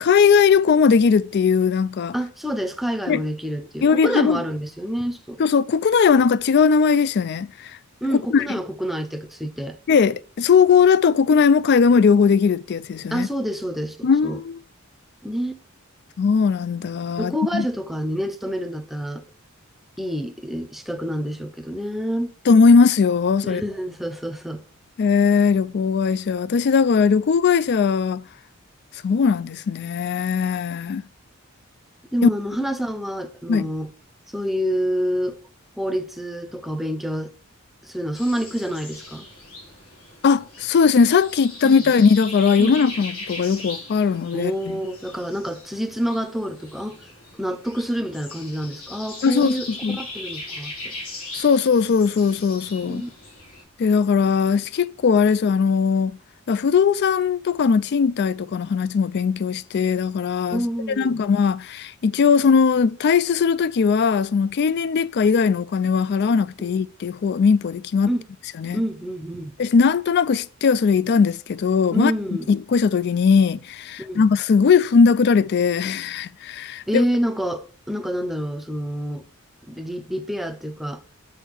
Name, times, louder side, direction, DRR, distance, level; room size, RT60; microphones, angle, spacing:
voice 1, 0.0-2.1 3.1-3.2 3.8-4.4 5.4-7.7 8.3-8.4 9.9-13.3 14.0-14.6 16.2-17.6 22.5-23.6 25.0-28.2 29.0-31.0 32.2-32.3 33.5-33.7 40.2-44.8 49.2-50.0 51.3-53.0 53.8-56.2 56.5-60.6 61.0-68.1 68.6-68.8 69.6-72.1 72.5-77.0, left 5 dB, 50° left, 0.3 m, -19 dB
voice 2, 2.1-5.4 8.0-9.8 13.1-14.4 15.2-15.6 17.2-19.2 20.0-22.3 23.4-24.6 32.1-33.9 34.3-35.4 35.8-37.3 37.8-39.3 41.6-41.8 42.6-42.9 44.3-47.0 47.4-49.7 50.0-50.9 52.8-53.1 60.5-61.2 68.1-68.3 68.7-69.5 71.9-72.5 74.0-74.2 76.9-79.2 79.7-81.0, equal, ahead, 0.6 m, -27 dB
sound 1, 38.1-53.6, left 2 dB, 90° left, 3.4 m, -39 dB
6.5 x 4.4 x 6.0 m
head